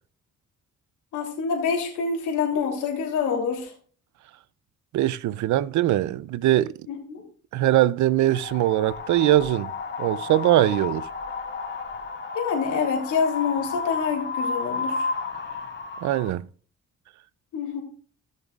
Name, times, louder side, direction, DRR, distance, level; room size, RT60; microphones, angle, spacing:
voice 1, 1.1-3.7 6.9-7.2 12.3-15.1 17.5-17.8, left 5 dB, 85° left, 3.2 m, -26 dB
voice 2, 4.9-6.7 7.5-9.7 10.0-11.1 16.0-16.5, right 14 dB, 70° right, 0.5 m, -21 dB
Wind, 8.2-16.3, left 4 dB, 35° left, 2.1 m, -32 dB
16.5 x 6.6 x 2.4 m
cardioid pair, 90°, 30 cm